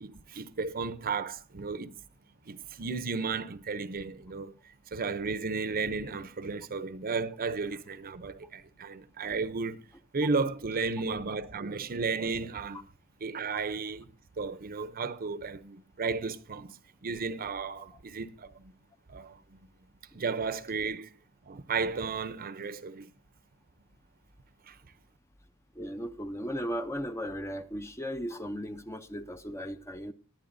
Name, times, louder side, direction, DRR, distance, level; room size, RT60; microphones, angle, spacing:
voice 1, 0.0-2.0 2.5-4.5 4.9-9.9 10.1-12.8 13.2-14.1 14.4-18.7 19.1-19.7 20.1-21.1 21.5-23.1 24.7-24.8, right 4 dB, 45° right, 0.6 m, -34 dB
voice 2, 25.7-30.1, equal, 15° left, 0.5 m, -36 dB
19.5 x 10.5 x 2.6 m
head